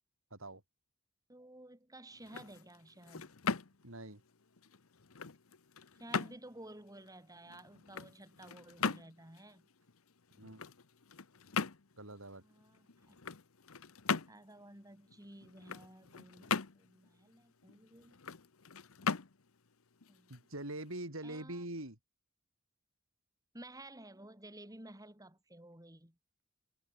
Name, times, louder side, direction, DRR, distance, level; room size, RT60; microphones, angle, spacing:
voice 1, 0.3-0.6 3.8-4.2 10.4-10.6 12.0-12.4 20.3-22.0, right 1 dB, 65° right, 6.2 m, -43 dB
voice 2, 1.3-3.3 6.0-9.7 12.4-13.2 14.3-18.2 20.1-20.5 21.2-21.6 23.5-26.2, right 1 dB, 15° right, 6.7 m, -54 dB
sound 1, 2.1-21.0, left 5 dB, 75° left, 1.1 m, -41 dB
head